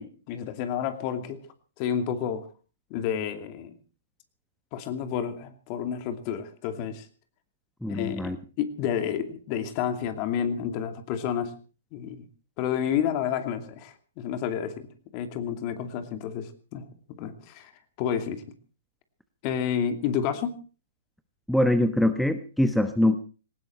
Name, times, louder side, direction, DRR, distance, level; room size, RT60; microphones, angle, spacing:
voice 1, 0.0-1.4 1.8-2.5 2.9-3.7 4.7-7.1 7.9-11.5 11.9-12.3 12.6-14.9 15.1-17.7 18.0-18.4 19.4-20.6, left 8 dB, 40° left, 9 dB, 2.6 m, -30 dB
voice 2, 7.8-8.4 21.5-23.2, left 1 dB, ahead, 10 dB, 1.0 m, -23 dB
19.0 x 16.5 x 4.3 m, 0.36 s
hypercardioid pair, 125°, 0 cm